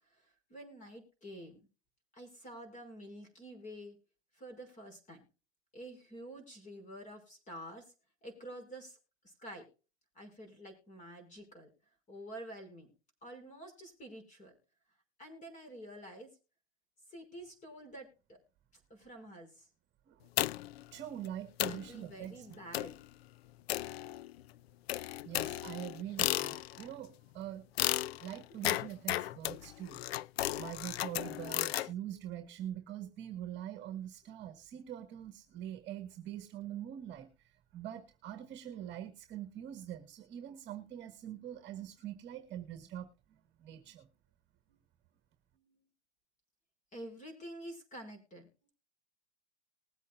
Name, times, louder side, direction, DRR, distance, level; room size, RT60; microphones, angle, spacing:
voice 1, 0.1-1.6 2.1-4.0 4.3-5.2 5.7-7.9 8.2-9.0 9.2-9.6 10.1-11.7 12.1-12.9 13.2-14.6 15.2-16.3 17.1-18.4 18.9-19.7 21.7-23.0 28.5-28.6 45.5-45.8 46.9-48.5, right 1 dB, 20° left, 7 dB, 5.7 m, -49 dB
sound 1, 20.4-20.8 21.3-21.4 21.6-21.9 22.7-23.0 23.7-24.4 24.9-26.9 27.8-31.9, left 15 dB, 65° left, 0.4 m, -34 dB
voice 2, 20.9-22.5 25.2-27.6 28.2-30.0 30.5-37.3 37.7-44.1, right 11 dB, 35° right, 9 dB, 1.7 m, -44 dB
20.5 x 8.3 x 2.4 m, 0.33 s
hypercardioid pair, 115°, 33 cm